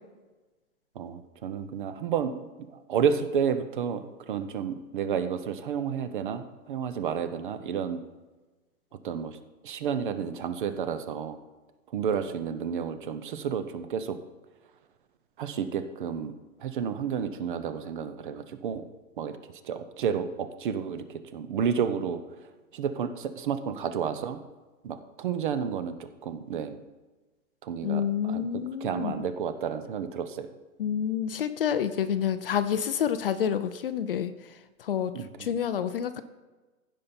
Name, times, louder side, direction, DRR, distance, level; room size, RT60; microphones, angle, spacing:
voice 1, 1.0-8.0 9.0-9.4 9.6-11.4 11.9-14.2 15.4-16.3 16.6-18.8 19.2-19.4 19.6-22.2 22.7-24.4 24.8-26.8 27.6-28.4 28.8-30.5 35.1-35.5, right 7 dB, 35° right, 11 dB, 0.6 m, -31 dB
voice 2, 27.8-29.3 30.8-36.2, left 8 dB, 40° left, 12 dB, 0.5 m, -29 dB
15.5 x 5.4 x 4.3 m, 1.2 s
hypercardioid pair, 150°, 43 cm